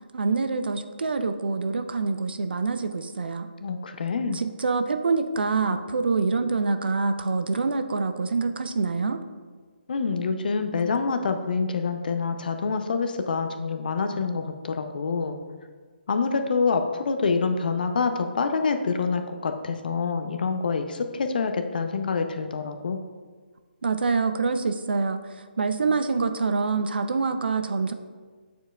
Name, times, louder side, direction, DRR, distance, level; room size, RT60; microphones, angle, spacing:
voice 1, 0.1-3.5 4.3-9.2 23.8-27.9, right 4 dB, 65° right, 9 dB, 0.5 m, -26 dB
voice 2, 3.6-4.4 9.9-15.4 16.1-23.0, left 4 dB, 55° left, 7 dB, 0.6 m, -26 dB
8.7 x 4.6 x 2.4 m, 1.5 s
figure-of-eight pair, 145°, 6 cm